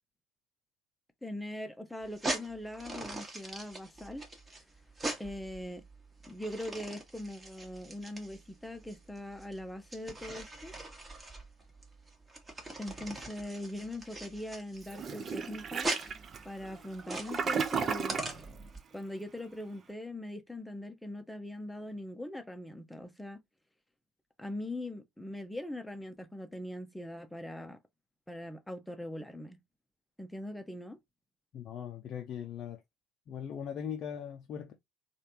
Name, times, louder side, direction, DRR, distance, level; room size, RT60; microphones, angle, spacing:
voice 1, 1.2-4.2 5.2-5.8 6.2-10.7 12.8-15.9 16.4-18.2 18.9-23.4 24.4-27.8 28.3-29.6 30.2-31.0, left 1 dB, 5° left, 0.7 m, -41 dB
sound 1, 2.0-18.8, right 2 dB, 20° right, 1.1 m, -41 dB
Toilet flush, 14.9-18.4, right 6 dB, 35° right, 0.5 m, -34 dB
voice 2, 31.5-32.8 33.3-34.7, left 8 dB, 45° left, 0.5 m, -40 dB
3.2 x 2.5 x 2.7 m
figure-of-eight pair, 60°, 0 cm